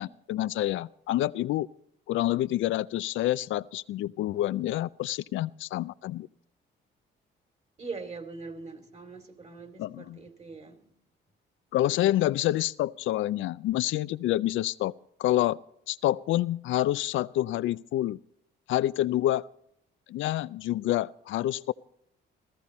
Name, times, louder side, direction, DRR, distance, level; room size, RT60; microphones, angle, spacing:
voice 1, 0.0-1.7 2.1-6.3 9.8-10.2 11.7-14.9 15.2-15.6 15.9-18.2 18.7-19.5 20.1-21.7, left 14 dB, 75° left, 0.5 m, -27 dB
voice 2, 7.8-10.8 11.8-12.0, right 4 dB, 35° right, 2.5 m, -42 dB
15.5 x 14.5 x 4.2 m
cardioid pair, 90°, 20 cm